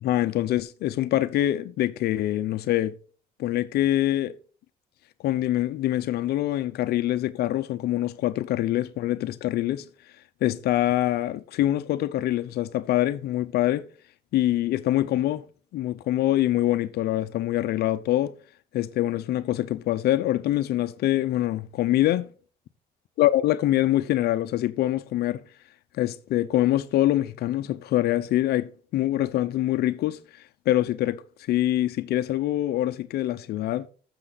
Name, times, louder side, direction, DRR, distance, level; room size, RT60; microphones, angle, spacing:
voice 1, 0.0-2.9 3.4-4.3 5.2-9.8 10.4-13.9 14.3-15.4 15.7-18.3 18.7-22.3 23.2-25.4 26.0-30.2 30.7-31.2 31.5-33.9, left 14 dB, 70° left, 0.7 m, -24 dB
14.0 x 6.8 x 4.0 m
cardioid pair, 110°, 17 cm